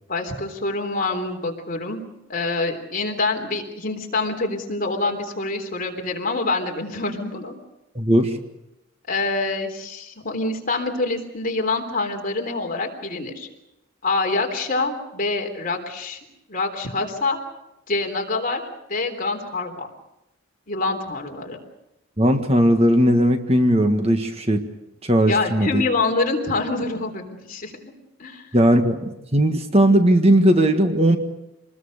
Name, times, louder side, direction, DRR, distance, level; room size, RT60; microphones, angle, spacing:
voice 1, 0.1-2.0 2.3-7.6 9.1-13.5 14.0-16.2 16.5-17.4 17.9-18.6 18.9-19.9 20.7-21.6 25.3-27.9 28.2-28.5, left 3 dB, 40° left, 3 dB, 3.6 m, -26 dB
voice 2, 7.9-8.4 22.2-24.6 25.0-25.8 28.5-31.2, right 1 dB, 30° right, 6 dB, 1.6 m, -18 dB
26.5 x 20.5 x 6.6 m, 0.90 s
head